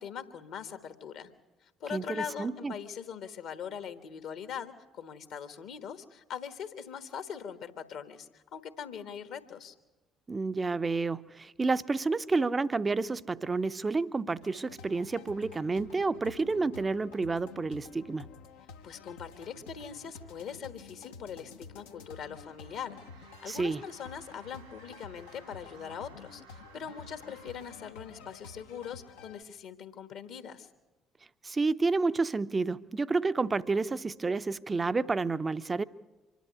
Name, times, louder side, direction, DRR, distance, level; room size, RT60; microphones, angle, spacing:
voice 1, 0.0-1.3 1.6-9.7 18.8-30.7, left 7 dB, 60° left, 1.3 m, -42 dB
voice 2, 1.9-2.7 10.3-18.3 23.5-23.8 31.4-35.8, right 3 dB, 25° right, 0.6 m, -30 dB
sound 1, 14.4-29.4, left 5 dB, 75° left, 0.9 m, -50 dB
sound 2, 21.6-28.6, right 8 dB, 80° right, 2.5 m, -59 dB
25.0 x 11.5 x 9.5 m
figure-of-eight pair, 50°, 0 cm